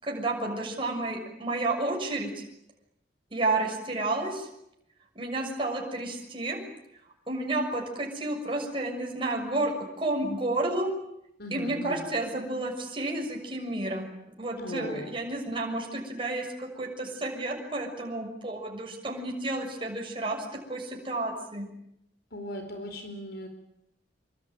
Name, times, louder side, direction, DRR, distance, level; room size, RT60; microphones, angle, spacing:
voice 1, 0.0-2.4 3.3-4.5 5.1-6.6 7.3-10.9 11.5-14.0 14.4-20.4 20.7-21.7, right 2 dB, 30° right, 0 dB, 6.6 m, -31 dB
voice 2, 11.4-12.1 14.6-15.1 22.3-23.5, left 1 dB, 60° left, 6 dB, 4.3 m, -38 dB
27.0 x 24.5 x 9.1 m, 0.80 s
head